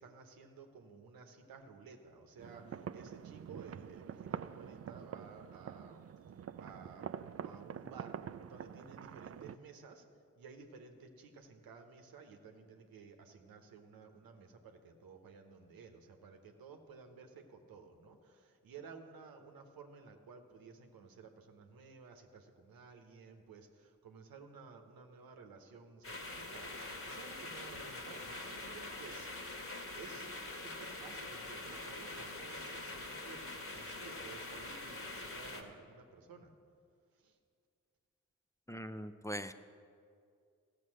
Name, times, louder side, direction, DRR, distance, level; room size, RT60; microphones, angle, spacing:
voice 1, 0.0-10.1 10.3-29.5 29.9-36.5 37.1-37.4, right 5 dB, 90° right, 5 dB, 1.0 m, -55 dB
sound 1, 2.4-9.6, right 8 dB, 45° right, 0.4 m, -46 dB
sound 2, 26.0-35.6, left 2 dB, 40° left, 1.6 m, -44 dB
voice 2, 38.7-39.5, equal, 10° left, 9 dB, 0.6 m, -41 dB
14.0 x 6.7 x 6.3 m, 2.3 s
supercardioid pair, 40°, 34 cm